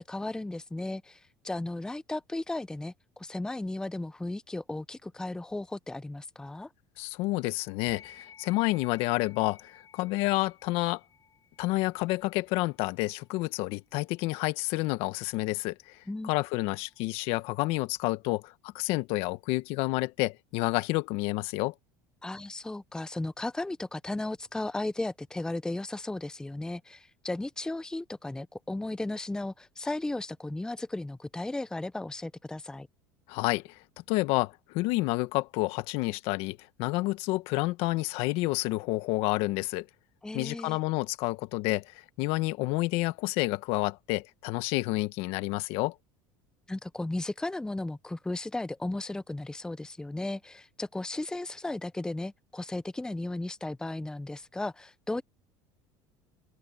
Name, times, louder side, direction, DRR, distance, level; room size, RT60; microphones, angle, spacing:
voice 1, 0.0-6.7 16.1-16.3 22.2-32.9 40.2-40.8 46.7-55.2, left 2 dB, 5° left, 0.7 m, -35 dB
voice 2, 7.0-11.0 11.6-16.0 16.2-21.7 33.3-33.6 34.1-39.8 40.3-45.9, left 21 dB, 70° left, 1.5 m, -29 dB
sound 1, 7.9-17.6, left 7 dB, 35° left, 7.1 m, -58 dB
open air
supercardioid pair, 95°, 10 cm